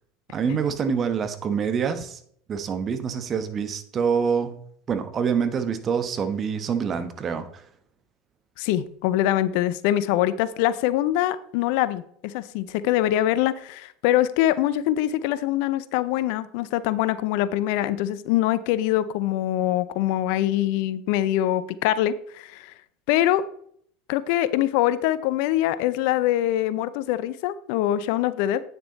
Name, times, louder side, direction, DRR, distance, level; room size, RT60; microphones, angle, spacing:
voice 1, 0.3-2.2 2.5-4.5 4.9-7.6, right 6 dB, 35° right, 10 dB, 1.2 m, -26 dB
voice 2, 8.6-22.7 23.1-23.4 24.1-28.6, left 13 dB, 65° left, 15 dB, 0.5 m, -24 dB
9.0 x 6.8 x 4.1 m, 0.64 s
hypercardioid pair, 85°, 0 cm